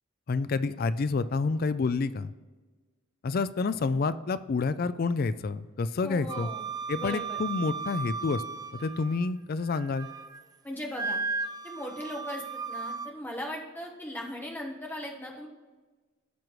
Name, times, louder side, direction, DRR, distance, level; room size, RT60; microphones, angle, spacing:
voice 1, 0.3-2.3 3.2-6.5 6.9-8.4 8.7-10.1, left 4 dB, 45° left, 14 dB, 0.4 m, -28 dB
voice 2, 6.0-6.6 7.0-7.4 10.6-11.3 11.6-15.5, equal, 10° left, -1 dB, 1.3 m, -38 dB
Wind instrument woodwind instrument, 6.3-9.3 9.7-10.4 10.9-13.1, right 4 dB, 20° right, 0.4 m, -36 dB
15.5 x 6.1 x 3.2 m, 1.3 s
head